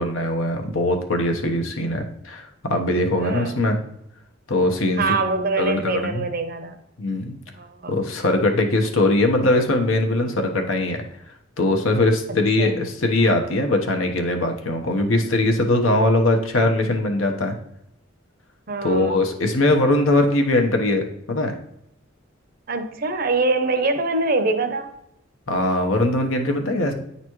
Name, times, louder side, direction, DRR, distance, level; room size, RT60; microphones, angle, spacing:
voice 1, 0.0-3.8 4.5-5.0 5.6-6.2 7.0-7.3 7.9-11.0 11.6-17.5 18.8-21.6 25.5-26.9, left 2 dB, 85° left, 4 dB, 1.0 m, -21 dB
voice 2, 3.2-3.6 5.0-6.8 7.6-8.0 12.6-12.8 18.7-19.2 22.7-24.9, right 3 dB, 45° right, 8 dB, 0.6 m, -24 dB
9.4 x 4.1 x 3.0 m, 0.79 s
head